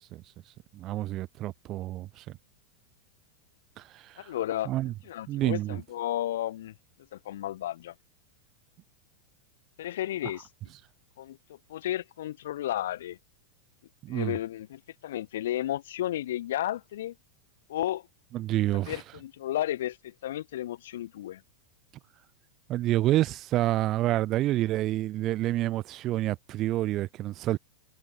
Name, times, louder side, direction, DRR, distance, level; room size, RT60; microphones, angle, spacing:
voice 1, 0.7-2.2 3.8-4.3 4.7-4.9 5.3-5.8 14.0-14.4 18.3-19.0 22.7-27.6, right 15 dB, 35° right, 0.4 m, -28 dB
voice 2, 4.2-6.7 7.1-7.9 9.8-10.5 11.2-13.2 14.1-17.1 17.7-18.1 18.9-21.4, left 13 dB, 60° left, 1.0 m, -33 dB
figure-of-eight pair, 90°, 0 cm